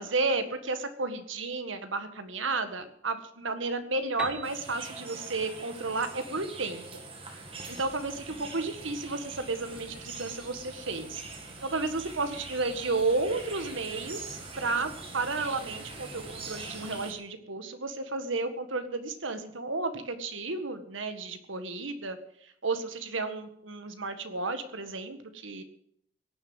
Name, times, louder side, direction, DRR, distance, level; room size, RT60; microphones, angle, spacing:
voice 1, 0.0-7.0 7.7-11.2 11.6-22.2 22.4-25.6, right 3 dB, 85° right, 9 dB, 1.8 m, -32 dB
Piano, 4.2-7.8, right 1 dB, 5° right, 2.2 m, -45 dB
sound 1, 4.4-17.1, right 3 dB, 30° right, 2.2 m, -43 dB
sound 2, 7.4-17.0, left 1 dB, 65° left, 3.3 m, -54 dB
17.5 x 7.2 x 9.6 m, 0.70 s
head